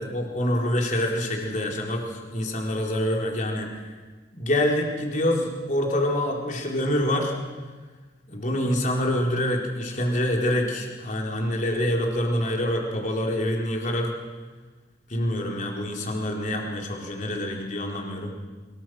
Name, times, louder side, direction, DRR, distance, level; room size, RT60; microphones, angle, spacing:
voice 1, 0.0-3.7 4.3-7.3 8.3-14.1 15.1-18.3, left 1 dB, 40° left, 0 dB, 4.3 m, -26 dB
25.0 x 22.5 x 6.3 m, 1.3 s
head